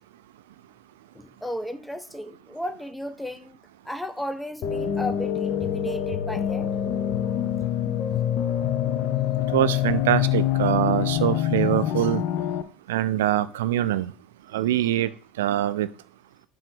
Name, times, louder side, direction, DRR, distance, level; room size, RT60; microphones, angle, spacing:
voice 1, 1.1-3.6 3.9-6.7, left 1 dB, 5° left, 0.5 m, -34 dB
sound 1, 4.6-12.6, left 10 dB, 55° left, 0.6 m, -25 dB
voice 2, 9.5-12.2 12.9-14.1 14.5-15.1 15.4-15.9, right 13 dB, 75° right, 0.3 m, -23 dB
7.5 x 2.6 x 5.3 m
figure-of-eight pair, 65°, 0 cm